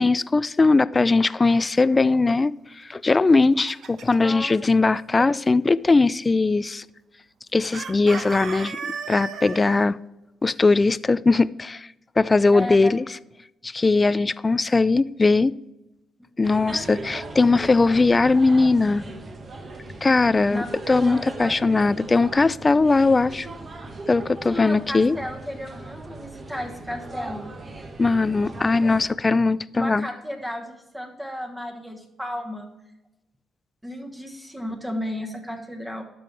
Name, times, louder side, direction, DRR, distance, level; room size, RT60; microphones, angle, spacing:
voice 1, 0.0-6.8 7.5-8.8 9.1-10.0 10.4-11.9 12.2-13.1 13.6-15.5 16.4-19.0 20.0-23.5 24.1-25.2 28.0-30.1, left 3 dB, 25° left, 0.3 m, -20 dB
Chicken rooster, 3.1-4.3 7.7-9.9, right 6 dB, 65° right, 0.9 m, -34 dB
voice 2, 4.2-4.9 5.2-5.4 12.5-12.9 20.5-20.7 21.1-21.5 21.8-22.0 24.4-27.6 29.7-32.7 33.8-36.0, equal, 5° right, 1.2 m, -34 dB
sound 1, 16.4-29.1, right 2 dB, 35° right, 1.2 m, -38 dB
12.5 x 5.3 x 3.3 m
cardioid pair, 90°, 0 cm